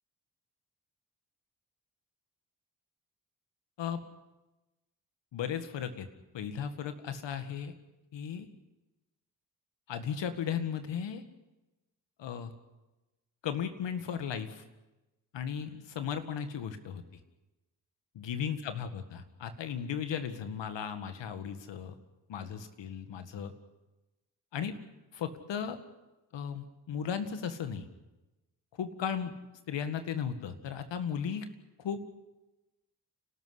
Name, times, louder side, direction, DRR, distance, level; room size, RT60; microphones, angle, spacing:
voice 1, 5.3-6.1 6.3-7.7 8.1-8.5 9.9-11.2 12.2-12.5 13.4-14.6 15.3-17.0 18.2-21.9 22.3-23.5 24.5-24.7 25.1-25.8 26.3-27.9 28.8-29.3 29.7-31.5 31.8-32.0, left 8 dB, 75° left, 9 dB, 2.0 m, -36 dB
29.0 x 13.0 x 9.9 m, 1.1 s
supercardioid pair, 45°, 43 cm